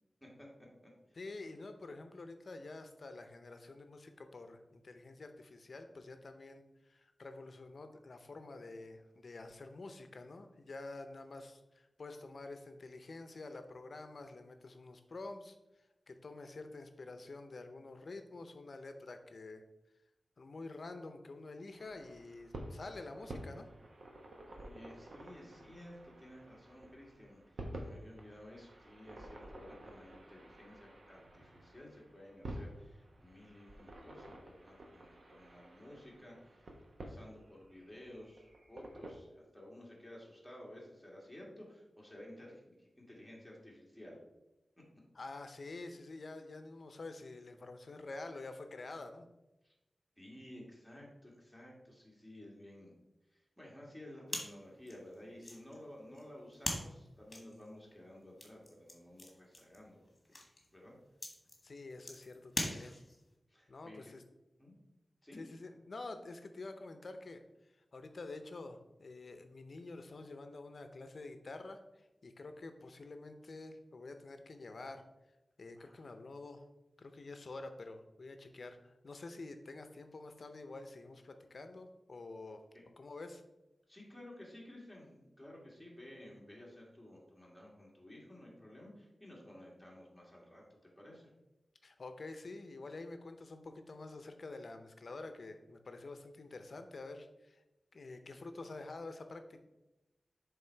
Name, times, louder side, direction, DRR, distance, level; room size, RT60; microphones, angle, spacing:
voice 1, 0.2-1.2 24.5-36.7 37.0-44.2 44.8-44.9 49.6-49.7 50.2-52.9 53.3-60.1 60.7-61.0 63.5-64.0 64.6-64.7 65.2-65.4 75.8-76.1 82.7-82.8 83.9-90.6 91.0-91.3, left 1 dB, 5° left, -3 dB, 1.9 m, -54 dB
voice 2, 1.1-19.7 20.4-23.7 45.1-49.3 61.6-63.0 63.7-64.2 65.3-75.0 75.6-76.6 77.0-82.6 83.0-83.4 91.8-97.6 97.9-99.6, left 3 dB, 60° left, 8 dB, 0.7 m, -48 dB
sound 1, 21.8-39.1, right 1 dB, 70° right, 1.0 m, -51 dB
sound 2, 54.3-63.3, left 1 dB, 35° left, 1.4 m, -44 dB
7.2 x 3.6 x 4.5 m, 0.98 s
wide cardioid pair, 105°, 0 cm